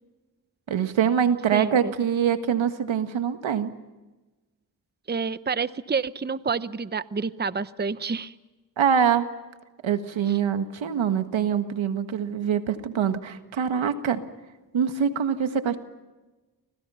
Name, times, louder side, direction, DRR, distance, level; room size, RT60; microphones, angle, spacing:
voice 1, 0.7-3.7 8.8-9.3 9.8-14.2 14.7-15.8, right 8 dB, 90° right, 8 dB, 1.7 m, -24 dB
voice 2, 1.5-1.9 5.1-8.3, right 5 dB, 20° right, 14 dB, 0.8 m, -28 dB
29.5 x 25.5 x 5.7 m, 1.1 s
cardioid pair, 60°, 45 cm